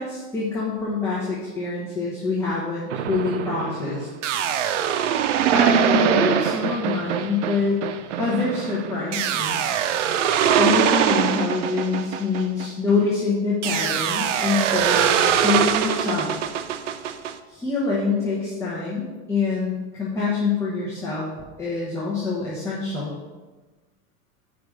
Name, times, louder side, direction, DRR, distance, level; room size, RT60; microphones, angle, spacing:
voice 1, 0.0-4.1 5.5-7.8 8.2-9.6 10.6-16.3 17.5-21.3 21.6-23.2, left 4 dB, 10° left, -6 dB, 1.1 m, -25 dB
sound 1, 2.9-13.0 13.6-17.3, right 9 dB, 90° right, 0.6 m, -23 dB
5.0 x 5.0 x 6.2 m, 1.3 s
supercardioid pair, 155°, 36 cm